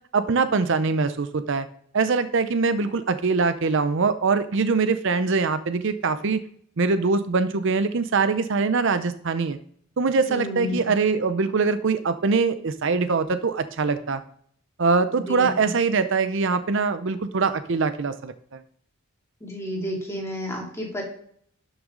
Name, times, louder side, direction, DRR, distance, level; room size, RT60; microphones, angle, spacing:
voice 1, 0.1-1.7 1.9-6.4 6.8-9.6 10.0-14.2 14.8-18.6, right 4 dB, 60° right, 11 dB, 0.6 m, -23 dB
voice 2, 10.3-10.9 15.1-15.7 19.4-21.0, left 1 dB, 15° left, -2 dB, 2.8 m, -31 dB
12.5 x 6.3 x 3.9 m, 0.63 s
head